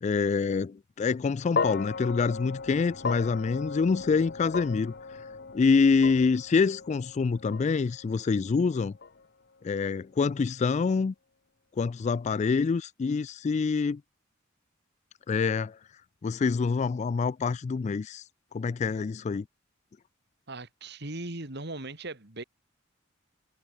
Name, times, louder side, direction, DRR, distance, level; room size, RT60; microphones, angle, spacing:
voice 1, 0.0-4.9 5.5-8.9 9.6-11.1 11.8-14.0 15.3-15.8 16.2-18.2 18.5-19.5, left 5 dB, 35° left, 0.3 m, -26 dB
sound 1, 1.5-9.9, left 4 dB, 55° left, 1.0 m, -37 dB
voice 2, 20.5-22.4, right 2 dB, 55° right, 3.0 m, -38 dB
head